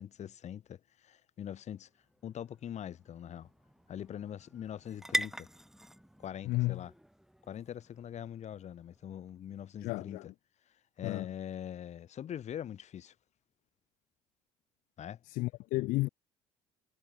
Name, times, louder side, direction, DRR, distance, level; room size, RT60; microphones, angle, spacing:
voice 1, 0.0-1.9 2.2-3.5 3.9-5.5 6.2-6.9 7.5-10.2 11.0-13.1 15.0-15.2, left 10 dB, 50° left, 3.9 m, -43 dB
sound 1, 1.6-9.4, equal, ahead, 1.6 m, -43 dB
voice 2, 6.4-6.8 9.8-10.3 11.0-11.3 15.3-16.1, left 20 dB, 65° left, 1.3 m, -32 dB
hypercardioid pair, 60°, 15 cm